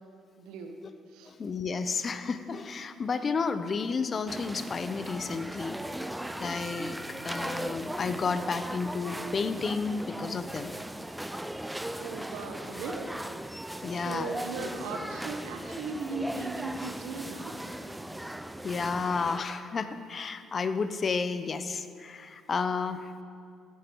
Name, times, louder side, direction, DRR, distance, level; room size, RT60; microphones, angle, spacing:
voice 1, 0.4-0.8 1.1-1.3 12.0-13.2 13.5-13.6 13.9-17.5, right 3 dB, 85° right, 4 dB, 1.3 m, -38 dB
voice 2, 1.3-5.8 6.4-10.8 13.8-14.3 18.6-23.2, left 4 dB, 40° left, 11 dB, 0.8 m, -32 dB
sound 1, 4.3-19.4, right 1 dB, 5° right, 0.5 m, -38 dB
14.5 x 9.5 x 4.7 m, 2.3 s
supercardioid pair, 70°, 0 cm